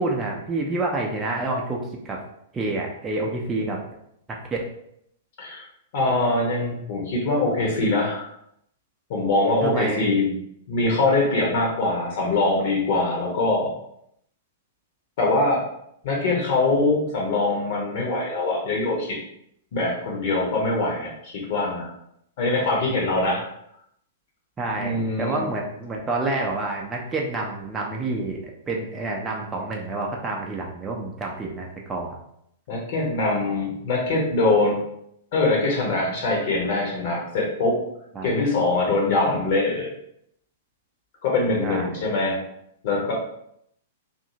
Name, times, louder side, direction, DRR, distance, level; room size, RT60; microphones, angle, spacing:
voice 1, 0.0-1.8 2.0-2.2 2.5-3.8 4.3-4.6 9.6-10.1 22.6-22.7 24.6-32.2 38.1-38.3 41.6-41.8, right 2 dB, 15° right, -1 dB, 0.5 m, -28 dB
voice 2, 5.9-8.3 9.1-10.4 10.7-13.7 15.2-15.6 16.0-19.2 19.7-21.9 22.4-23.4 24.8-25.5 32.7-34.8 35.3-37.8 38.2-39.9 41.2-42.4 42.8-43.1, left 2 dB, 50° left, -2 dB, 0.9 m, -23 dB
2.7 x 2.6 x 2.7 m, 0.74 s
figure-of-eight pair, 105°, 0 cm